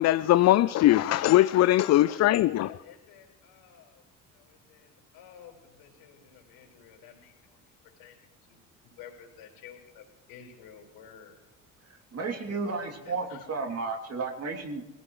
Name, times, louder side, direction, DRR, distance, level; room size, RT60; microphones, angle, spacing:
voice 1, 0.0-2.7, left 14 dB, 40° left, 15 dB, 0.5 m, -21 dB
voice 2, 2.2-11.4 12.4-13.5, left 8 dB, 65° left, 1 dB, 5.0 m, -52 dB
voice 3, 12.1-14.8, right 4 dB, 40° right, 3 dB, 2.9 m, -33 dB
22.0 x 16.5 x 3.2 m, 1.2 s
hypercardioid pair, 55°, 40 cm